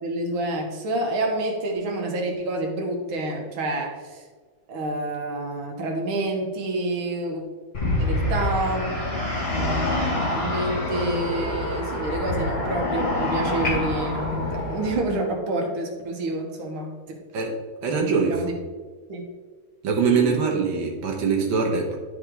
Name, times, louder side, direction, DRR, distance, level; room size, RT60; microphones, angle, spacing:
voice 1, 0.0-4.2 4.7-7.4 8.0-8.9 9.5-17.2 18.3-18.6 19.1-19.2, right 2 dB, 90° right, 0 dB, 2.1 m, -28 dB
sound 1, 7.7-15.0, left 2 dB, 30° left, 2.4 m, -26 dB
voice 2, 17.3-18.4 19.8-22.0, right 5 dB, 75° right, 0 dB, 1.9 m, -23 dB
11.5 x 5.0 x 3.7 m, 1.5 s
omnidirectional pair, 2.2 m